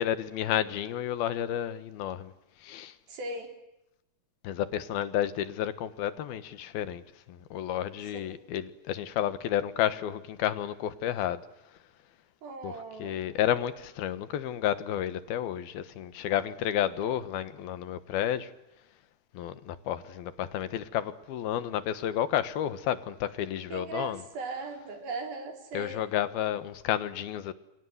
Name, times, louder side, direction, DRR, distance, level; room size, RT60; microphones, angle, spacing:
voice 1, 0.0-2.3 2.6-3.0 4.4-7.0 7.3-11.4 12.6-12.7 13.0-18.5 19.3-24.2 25.7-27.5, left 11 dB, 85° left, 3.3 m, -31 dB
voice 2, 3.1-3.5 8.3-8.4 12.4-13.2 23.7-26.1, right 3 dB, 80° right, 6.0 m, -38 dB
29.0 x 25.5 x 8.0 m
omnidirectional pair, 4.2 m